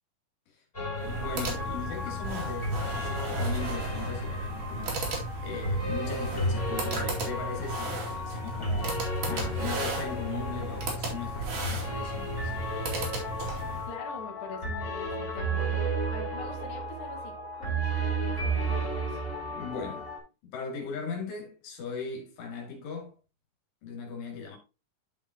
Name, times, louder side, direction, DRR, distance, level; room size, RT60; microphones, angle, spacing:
sound 1, 0.7-20.2, right 1 dB, 15° left, 2.7 m, -33 dB
voice 1, 0.8-9.0 9.3-12.5 19.5-20.1 20.4-23.1 23.8-24.6, left 5 dB, 75° left, 4.5 m, -38 dB
sound 2, 0.9-13.9, right 2 dB, 50° right, 3.6 m, -35 dB
voice 2, 13.9-15.8 16.1-17.3 17.6-19.2, left 4 dB, 60° left, 3.4 m, -43 dB
12.0 x 5.5 x 2.9 m
omnidirectional pair, 5.0 m